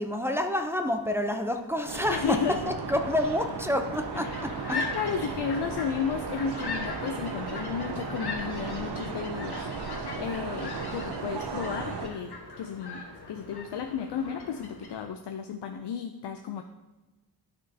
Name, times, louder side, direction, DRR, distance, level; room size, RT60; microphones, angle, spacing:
voice 1, 0.0-2.4 2.7-4.5, left 1 dB, 5° right, 4 dB, 0.5 m, -28 dB
sound 1, 1.9-12.1, right 5 dB, 75° right, 0.8 m, -36 dB
voice 2, 2.1-2.6 4.2-4.4 4.7-13.0 13.3-16.6, left 7 dB, 85° left, 6 dB, 0.5 m, -33 dB
sound 2, 4.2-15.0, left 4 dB, 70° left, 1.2 m, -40 dB
12.0 x 4.4 x 2.7 m, 1.1 s
wide cardioid pair, 100°, 40 cm